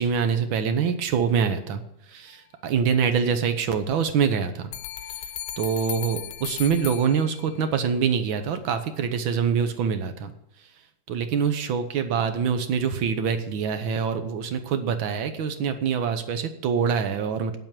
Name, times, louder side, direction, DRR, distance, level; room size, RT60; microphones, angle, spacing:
voice 1, 0.0-1.8 2.1-4.7 5.6-10.3 11.1-17.6, right 6 dB, 80° right, 9 dB, 1.8 m, -25 dB
sound 1, 4.7-7.8, left 10 dB, 70° left, 1.1 m, -36 dB
9.6 x 7.8 x 7.4 m, 0.79 s
omnidirectional pair, 2.1 m